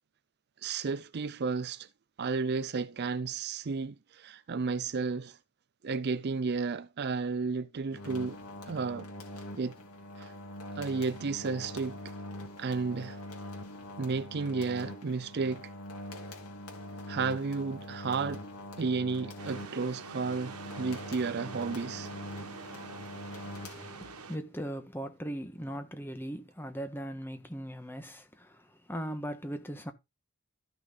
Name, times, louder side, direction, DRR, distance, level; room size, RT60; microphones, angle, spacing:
voice 1, 0.6-1.9 2.2-5.4 5.8-8.4 8.7-9.1 9.6-9.8 10.2-10.3 10.8-12.1 12.6-13.2 14.0-15.6 17.1-18.5 18.8-22.1, right 4 dB, 50° right, 0.5 m, -32 dB
sound 1, 7.9-24.4, left 1 dB, 80° left, 3.0 m, -44 dB
sound 2, 19.4-24.4, right 4 dB, 90° right, 1.5 m, -45 dB
voice 2, 23.6-23.9 24.3-28.6 28.9-29.9, equal, 10° left, 1.5 m, -39 dB
14.0 x 6.4 x 3.9 m
head